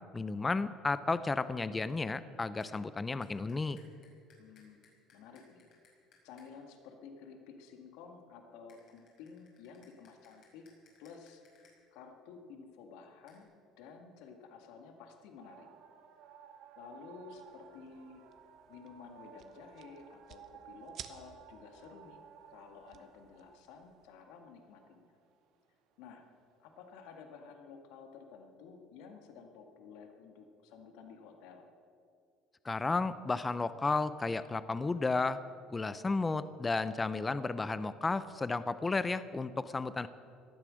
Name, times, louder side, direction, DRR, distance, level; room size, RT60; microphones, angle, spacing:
voice 1, 0.1-3.8 32.6-35.4 35.7-40.1, left 3 dB, 20° left, 14 dB, 0.6 m, -33 dB
sound 1, 2.6-2.7 3.2-6.5 8.7-11.7 13.3-13.4, left 5 dB, 60° left, 5.5 m, -65 dB
voice 2, 4.4-4.8 5.1-5.7 6.2-10.7 11.0-11.4 11.9-13.5 13.8-15.7 16.8-18.2 18.7-22.2 22.5-25.2 26.0-26.2 26.6-31.7, left 5 dB, 80° left, 4 dB, 1.9 m, -52 dB
sound 2, 15.4-26.0 26.5-27.2, right 8 dB, 70° right, 1.6 m, -57 dB
sound 3, 17.3-24.1, right 9 dB, 50° right, 1.1 m, -56 dB
18.5 x 12.5 x 6.4 m, 2.4 s
supercardioid pair, 110°, 0 cm